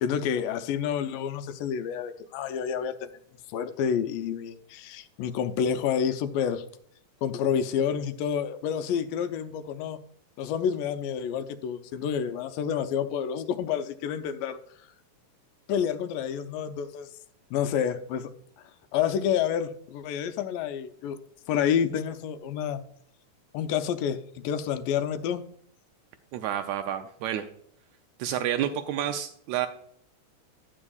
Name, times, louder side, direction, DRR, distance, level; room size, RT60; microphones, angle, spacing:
voice 1, 0.0-3.1 3.5-6.6 7.2-10.0 10.4-14.6 15.7-17.1 17.5-18.3 18.9-21.2 21.5-22.8 23.5-25.4, left 8 dB, 90° left, 10 dB, 2.3 m, -29 dB
voice 2, 26.3-27.5 28.2-29.7, right 10 dB, 90° right, 7 dB, 1.6 m, -29 dB
12.0 x 8.7 x 2.3 m, 0.66 s
omnidirectional pair, 3.8 m